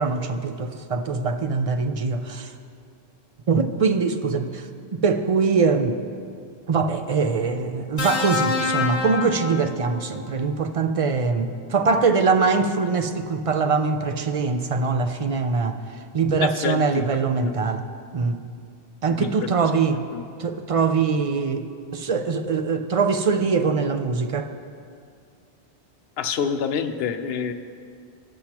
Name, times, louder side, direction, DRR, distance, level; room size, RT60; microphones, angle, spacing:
voice 1, 0.0-2.5 3.5-4.6 4.9-6.0 6.7-15.8 16.1-17.8 18.1-18.4 19.0-20.0 20.4-21.7 21.9-24.5, right 4 dB, 50° right, 7 dB, 0.4 m, -23 dB
sound 1, 8.0-10.2 11.6-11.8, left 4 dB, 35° left, 0.9 m, -27 dB
voice 2, 16.3-17.0 17.3-17.5 19.1-19.3 20.1-20.2 26.2-27.5, left 7 dB, 65° left, 7 dB, 0.8 m, -27 dB
18.5 x 7.8 x 2.9 m, 2.3 s
omnidirectional pair, 1.1 m